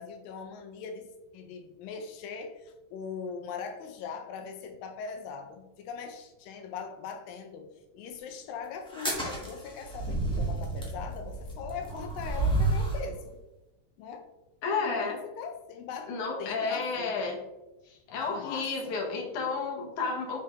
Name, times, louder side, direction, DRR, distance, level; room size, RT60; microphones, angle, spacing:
voice 1, 0.0-7.7 7.9-13.4 14.0-14.3 14.8-17.4 18.2-19.3, left 6 dB, 80° left, 5 dB, 2.6 m, -41 dB
sound 1, 8.9-13.1, right 2 dB, 5° left, 0.5 m, -30 dB
voice 2, 14.6-15.2 16.1-17.4 17.9-20.4, left 4 dB, 65° left, 0 dB, 2.8 m, -31 dB
7.5 x 5.9 x 3.2 m, 1.0 s
omnidirectional pair, 4.0 m